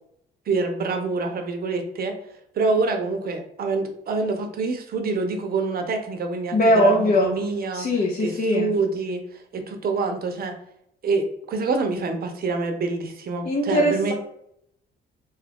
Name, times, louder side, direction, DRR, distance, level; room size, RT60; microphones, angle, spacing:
voice 1, 0.5-2.1 2.6-7.9 8.2-9.2 9.5-10.6 11.0-14.1, right 3 dB, 50° right, 5 dB, 0.6 m, -26 dB
voice 2, 6.5-7.3 7.7-8.7 13.4-14.1, equal, 45° left, -3 dB, 0.6 m, -20 dB
2.8 x 2.3 x 3.4 m, 0.73 s
cardioid pair, 90°, 20 cm